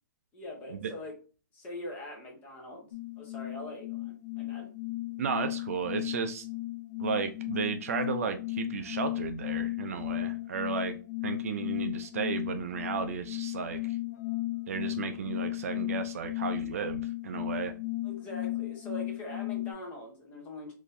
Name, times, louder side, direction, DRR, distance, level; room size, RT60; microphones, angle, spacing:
voice 1, 0.3-1.1 1.5-2.9 3.2-4.7 18.0-20.7, left 1 dB, 15° left, 1 dB, 0.6 m, -43 dB
sound 1, 2.9-19.7, left 19 dB, 55° left, 0.5 m, -35 dB
voice 2, 5.2-6.5 7.0-11.0 11.2-14.0 14.7-17.7, right 6 dB, 45° right, 7 dB, 0.3 m, -34 dB
3.8 x 2.6 x 2.5 m, 0.36 s
hypercardioid pair, 170°, 11 cm